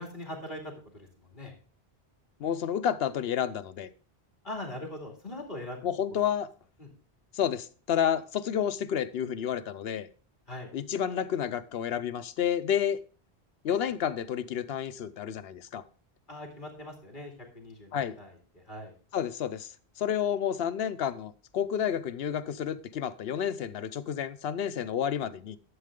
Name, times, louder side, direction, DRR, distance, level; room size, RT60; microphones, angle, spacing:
voice 1, 0.0-1.5 4.4-6.2 6.8-6.9 10.5-10.7 16.3-18.9, left 1 dB, 50° left, 2.5 m, -41 dB
voice 2, 2.4-3.9 5.8-6.5 7.3-10.1 10.7-13.0 13.6-15.8 17.9-18.2 19.1-19.7 20.0-25.6, left 9 dB, 70° left, 0.9 m, -30 dB
11.0 x 7.5 x 3.6 m
omnidirectional pair, 1.1 m